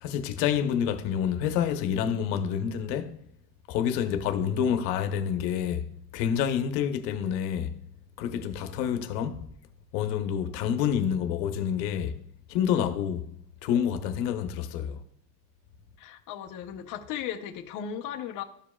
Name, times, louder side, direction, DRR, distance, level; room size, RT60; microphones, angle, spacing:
voice 1, 0.0-3.1 3.7-7.8 8.2-9.4 9.9-12.2 12.5-13.3 13.6-15.0, left 8 dB, 90° left, 0.9 m, -28 dB
voice 2, 16.0-18.4, left 9 dB, 40° left, 0.7 m, -36 dB
13.0 x 5.0 x 2.3 m
cardioid pair, 145°, 50 cm